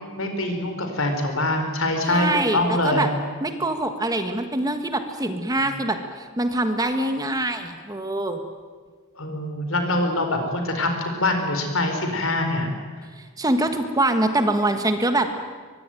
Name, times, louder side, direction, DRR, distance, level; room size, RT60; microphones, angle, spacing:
voice 1, 0.1-2.3 2.5-3.0 9.1-12.7, left 2 dB, 65° left, 5 dB, 4.9 m, -24 dB
voice 2, 2.1-3.1 3.4-8.4 13.1-15.3, right 1 dB, 15° right, 7 dB, 1.6 m, -24 dB
23.5 x 22.5 x 9.2 m, 1.5 s
head